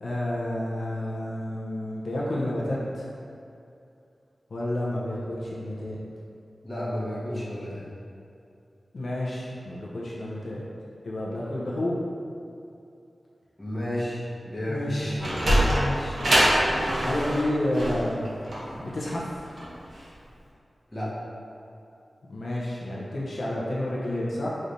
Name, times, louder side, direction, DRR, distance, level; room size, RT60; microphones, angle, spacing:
voice 1, 0.0-3.1 4.5-6.0 8.9-10.6 11.0-12.0 14.7-16.2 17.0-18.3 18.8-19.5 22.3-24.5, left 1 dB, 70° left, -6 dB, 0.6 m, -30 dB
voice 2, 6.6-7.9 13.6-15.2 20.9-21.1, left 1 dB, 15° left, -8 dB, 1.1 m, -32 dB
Sliding door, 14.9-20.1, equal, 60° right, 0.9 m, -24 dB
5.0 x 3.2 x 2.7 m, 2.6 s
wide cardioid pair, 100°, 0 cm